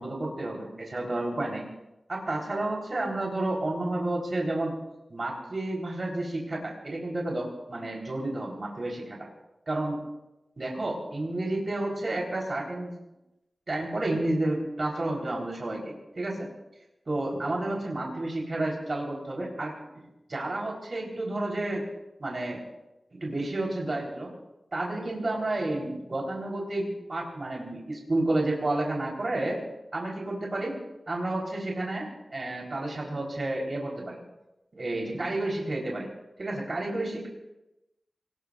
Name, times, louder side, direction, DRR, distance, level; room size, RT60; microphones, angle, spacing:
voice 1, 0.0-1.6 2.1-4.8 5.1-9.3 9.7-10.0 10.6-12.9 13.7-16.5 17.1-19.7 20.3-21.8 22.2-22.6 23.2-24.3 24.7-29.6 29.9-30.8 31.1-34.2 34.8-36.1 36.4-37.3, right 2 dB, 50° right, -2 dB, 3.8 m, -31 dB
26.0 x 20.0 x 2.5 m, 0.95 s
wide cardioid pair, 75°, 0 cm